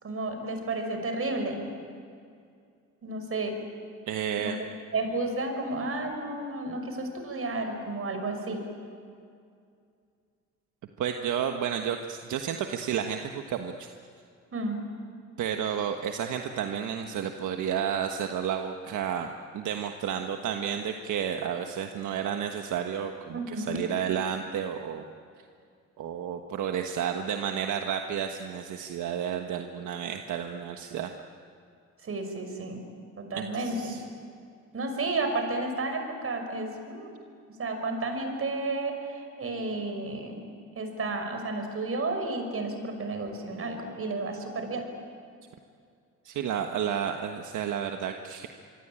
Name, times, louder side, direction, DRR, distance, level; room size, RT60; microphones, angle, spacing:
voice 1, 0.0-1.7 3.0-3.6 4.4-4.5 4.9-8.6 14.5-14.8 23.3-23.8 32.0-32.8 33.2-34.0 34.7-37.1 37.5-40.4 40.8-44.9, right 2 dB, 50° right, 5 dB, 5.6 m, -32 dB
voice 2, 4.1-4.6 11.0-13.9 15.4-25.0 26.0-31.1 33.3-34.0 46.2-48.5, right 8 dB, 80° right, 5 dB, 1.4 m, -31 dB
26.0 x 23.5 x 8.9 m, 2.4 s
cardioid pair, 90°, 30 cm